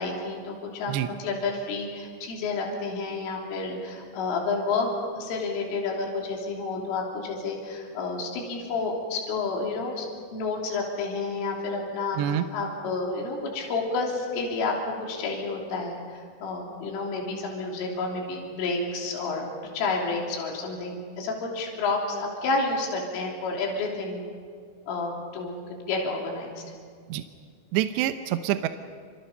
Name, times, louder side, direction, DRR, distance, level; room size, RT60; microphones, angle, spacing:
voice 1, 0.0-0.9 1.2-4.9 5.2-10.1 10.3-19.5 19.7-24.2 24.9-26.5, left 3 dB, 85° left, -1 dB, 5.7 m, -30 dB
voice 2, 27.7-28.7, right 12 dB, 75° right, 8 dB, 2.7 m, -26 dB
29.0 x 27.0 x 5.6 m, 2.1 s
omnidirectional pair, 5.6 m